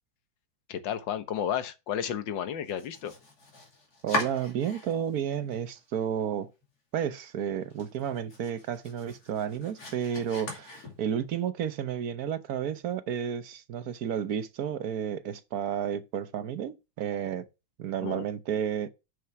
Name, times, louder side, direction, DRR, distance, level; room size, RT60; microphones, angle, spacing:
voice 1, 0.7-3.1 18.0-18.3, left 9 dB, 75° left, 1.7 m, -32 dB
Domestic sounds home sounds, 2.6-5.2 5.5-6.3 6.6-6.7 7.1-7.2 7.6-11.3, left 2 dB, 55° left, 3.0 m, -39 dB
voice 2, 4.0-6.5 6.9-17.4 17.8-18.9, right 9 dB, 60° right, 1.2 m, -32 dB
7.4 x 6.4 x 5.8 m
omnidirectional pair, 2.0 m